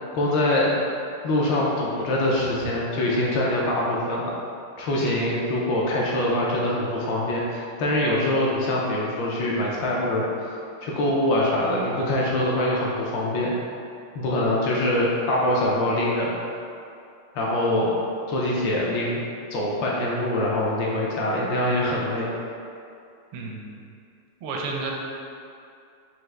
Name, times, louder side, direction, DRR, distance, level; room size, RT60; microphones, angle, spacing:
voice 1, 0.1-0.7 1.2-4.3 4.8-10.5 10.8-13.5 14.1-16.3 17.3-17.9 18.3-19.2 19.5-22.3, left 1 dB, 75° left, -4 dB, 1.2 m, -24 dB
voice 2, 5.0-5.3 23.3-23.8 24.4-24.9, right 3 dB, 80° right, -1 dB, 1.5 m, -32 dB
4.7 x 2.5 x 3.1 m, 2.5 s
omnidirectional pair, 2.4 m